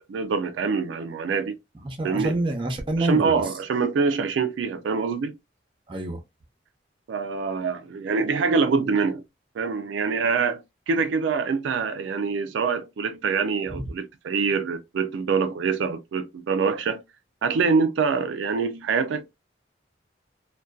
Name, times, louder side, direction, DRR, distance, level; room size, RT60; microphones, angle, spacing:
voice 1, 0.0-1.6 2.0-2.4 3.0-5.3 7.1-9.2 9.6-17.0 17.4-19.3, right 5 dB, 85° right, 0.4 m, -25 dB
voice 2, 1.8-3.3 5.9-6.2 13.7-13.8, right 2 dB, 30° right, 0.6 m, -27 dB
2.5 x 2.2 x 2.2 m
head